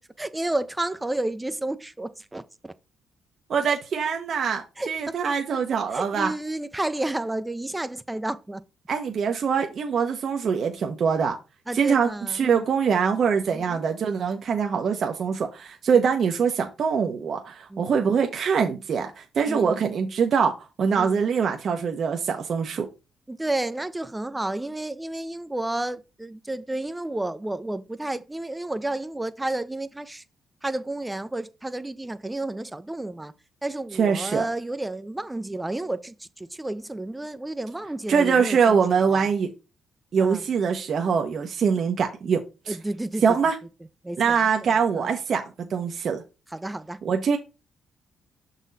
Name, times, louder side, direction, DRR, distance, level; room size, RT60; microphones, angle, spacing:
voice 1, 0.2-2.7 4.8-5.2 5.9-8.6 10.1-10.2 11.7-12.7 13.5-13.8 15.9-16.1 17.7-17.9 19.5-19.8 20.9-21.2 23.3-30.2 30.6-33.3 33.6-38.8 39.1-39.3 40.2-40.4 42.7-43.2 44.0-45.1 46.5-47.0, right 2 dB, 10° right, 0.6 m, -31 dB
voice 2, 3.5-6.3 8.9-11.4 11.7-22.9 34.0-34.4 38.1-39.5 40.1-42.4 42.7-42.8 43.2-43.6 44.2-46.2 47.0-47.4, right 6 dB, 55° right, 0.8 m, -23 dB
6.2 x 4.1 x 4.0 m
cardioid pair, 90°, 0 cm